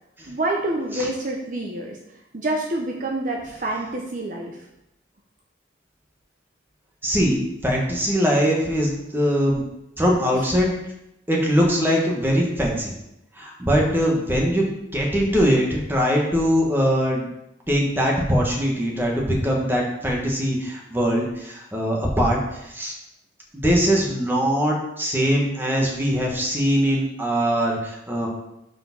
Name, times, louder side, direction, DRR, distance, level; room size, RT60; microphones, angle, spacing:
voice 1, 0.3-2.0 2.3-4.6, right 2 dB, 45° right, -1 dB, 0.9 m, -27 dB
voice 2, 7.0-9.6 10.0-10.8 11.3-12.9 13.4-17.3 17.7-22.9 23.5-28.3, equal, 10° right, -2 dB, 1.4 m, -22 dB
5.8 x 5.1 x 5.9 m, 0.87 s
head